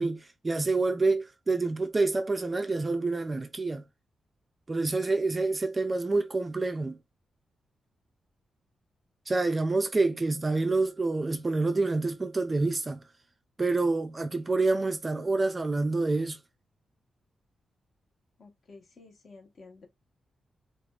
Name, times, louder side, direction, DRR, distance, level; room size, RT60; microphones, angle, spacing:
voice 1, 0.0-3.8 4.7-7.0 9.3-13.0 13.6-16.4, right 3 dB, 20° right, 0.3 m, -27 dB
voice 2, 18.4-19.9, left 3 dB, 40° left, 1.0 m, -52 dB
4.8 x 2.3 x 2.3 m
wide cardioid pair, 175°, 0 cm